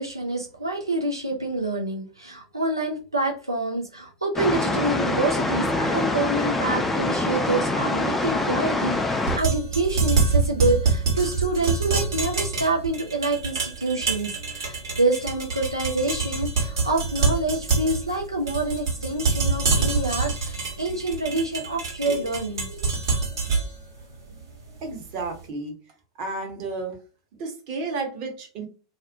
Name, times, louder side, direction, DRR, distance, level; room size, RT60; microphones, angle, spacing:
voice 1, 0.0-22.9, right 2 dB, 85° right, 1 dB, 0.4 m, -27 dB
sound 1, 4.4-9.4, left 2 dB, 10° left, 0.4 m, -25 dB
sound 2, 9.2-25.3, right 4 dB, 65° right, 1.1 m, -26 dB
voice 2, 24.8-25.7 26.2-26.9 27.4-28.7, right 3 dB, 45° right, 3 dB, 0.9 m, -32 dB
2.4 x 2.0 x 2.6 m, 0.35 s
figure-of-eight pair, 90°, 2 cm